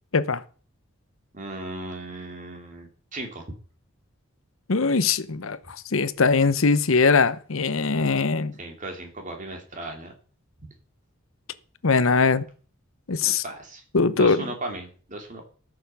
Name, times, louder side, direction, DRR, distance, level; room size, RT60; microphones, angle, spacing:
voice 1, 1.3-3.5 8.6-10.1 13.2-13.8 14.1-15.4, right 1 dB, 35° right, 3.0 m, -36 dB
voice 2, 4.7-8.5 11.8-12.5 13.1-13.4 13.9-14.4, left 4 dB, 70° left, 0.8 m, -21 dB
14.0 x 7.0 x 7.0 m
head